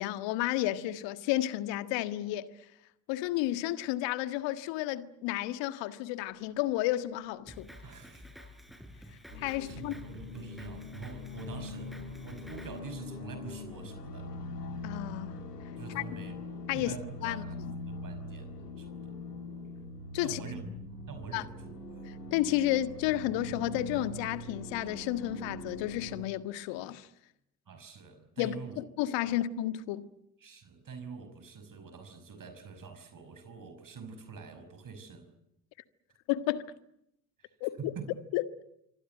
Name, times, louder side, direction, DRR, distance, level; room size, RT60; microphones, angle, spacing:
voice 1, 0.0-2.5 3.1-7.7 9.3-9.9 14.8-15.4 15.9-16.0 16.7-17.0 17.2-17.7 20.1-20.4 21.3-21.4 22.3-27.1 28.4-30.1 36.3-36.6 37.6-37.9 38.3-38.4, left 14 dB, 65° left, 1.7 m, -32 dB
Drum kit, 7.5-12.8, equal, ahead, 6.1 m, -50 dB
voice 2, 7.8-8.3 9.6-11.9 12.2-14.3 15.8-16.4 16.7-17.6 17.9-19.2 20.2-20.6 21.1-21.8 27.7-28.8 29.2-29.4 30.4-35.3 37.4-38.1, right 5 dB, 40° right, 5.7 m, -45 dB
sound 1, 9.3-26.2, left 2 dB, 90° left, 3.0 m, -42 dB
26.0 x 25.0 x 7.9 m
figure-of-eight pair, 55°, 47 cm